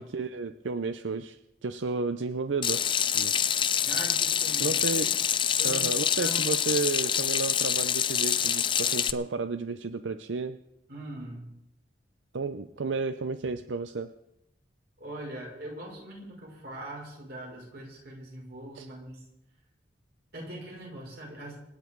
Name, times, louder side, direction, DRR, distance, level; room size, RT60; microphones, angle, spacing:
voice 1, 0.0-2.8 3.1-3.3 4.6-5.1 5.5-10.6 12.3-14.1 18.8-18.9, right 4 dB, 90° right, 10 dB, 0.6 m, -32 dB
Water tap faucet / Sink (filling or washing), 2.6-9.1, left 9 dB, 25° left, 0.5 m, -26 dB
voice 2, 3.8-5.1 5.6-5.9 6.2-6.4 10.9-11.5 13.4-13.5 15.0-19.3 20.3-21.6, right 1 dB, 60° right, -2 dB, 5.8 m, -41 dB
26.5 x 9.4 x 4.6 m, 0.84 s
head